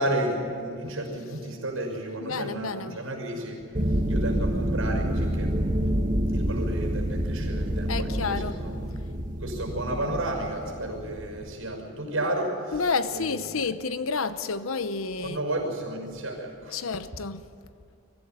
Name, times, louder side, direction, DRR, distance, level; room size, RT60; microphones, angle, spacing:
voice 1, 0.0-3.6 3.9-5.5 6.3-8.8 9.4-12.8 13.1-13.6 15.2-16.9, right 1 dB, 85° right, 5.8 m, -32 dB
voice 2, 2.2-3.0 7.9-8.6 9.8-9.9 12.7-15.5 16.6-17.4, left 4 dB, 85° left, 0.9 m, -30 dB
sound 1, 3.7-11.5, equal, 40° right, 1.6 m, -28 dB
24.5 x 15.0 x 9.5 m
head